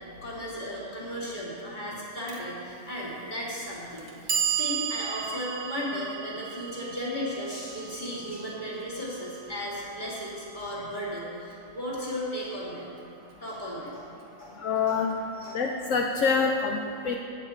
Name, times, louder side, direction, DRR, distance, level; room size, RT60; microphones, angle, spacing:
voice 1, 0.2-12.8 13.4-14.1 14.4-14.6 14.9-15.0 15.4-15.6, equal, 35° left, -6 dB, 2.8 m, -35 dB
Clock, 2.3-2.4 3.4-3.5 4.0-10.0, right 8 dB, 65° right, 1.5 m, -34 dB
voice 2, 14.6-15.1 15.5-17.1, left 5 dB, 70° left, 1 dB, 1.1 m, -26 dB
15.5 x 8.2 x 4.4 m, 2.5 s
omnidirectional pair, 1.4 m